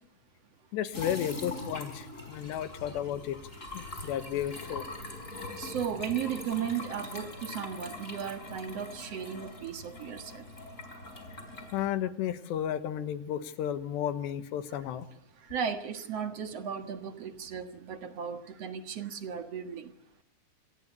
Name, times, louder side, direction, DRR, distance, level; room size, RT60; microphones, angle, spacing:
voice 1, 0.7-3.4 3.7-4.8 11.7-15.1, left 10 dB, 80° left, 12 dB, 3.6 m, -33 dB
sound 1, 0.9-11.9, left 2 dB, 15° left, 4.8 m, -42 dB
voice 2, 5.6-10.5 15.5-19.9, right 8 dB, 55° right, 9 dB, 1.8 m, -35 dB
27.5 x 22.0 x 8.3 m, 0.67 s
omnidirectional pair, 5.0 m